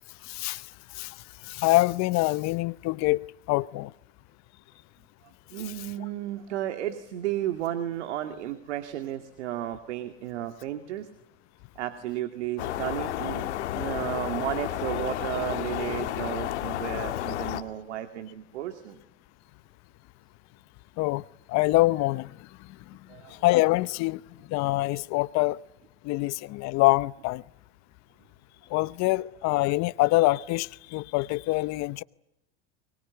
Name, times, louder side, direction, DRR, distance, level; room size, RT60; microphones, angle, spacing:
voice 1, 0.3-0.6 1.0-1.1 1.5-3.9 21.0-21.2 21.5-22.3 23.3-24.2 24.5-25.6 26.0-27.4 28.7-32.0, left 20 dB, 50° left, 0.9 m, -25 dB
voice 2, 5.5-11.1 11.8-19.0 23.1-23.3 29.1-29.2, right 12 dB, 85° right, 2.3 m, -33 dB
sound 1, 12.6-17.6, left 13 dB, 85° left, 2.0 m, -31 dB
23.5 x 23.0 x 9.5 m
supercardioid pair, 110°, 33 cm